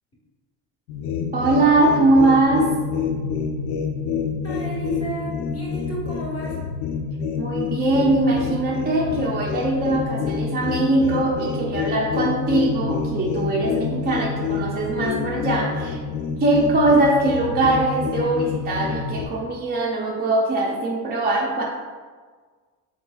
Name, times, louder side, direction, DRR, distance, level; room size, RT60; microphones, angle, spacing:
sound 1, 0.9-19.3, left 6 dB, 75° left, 0.5 m, -27 dB
voice 1, 1.3-2.7 7.4-16.0 16.4-21.6, right 2 dB, 20° right, -2 dB, 0.4 m, -21 dB
voice 2, 4.4-6.6, right 1 dB, 30° left, -5 dB, 1.3 m, -33 dB
3.7 x 3.0 x 2.2 m, 1.5 s
supercardioid pair, 70°, 45 cm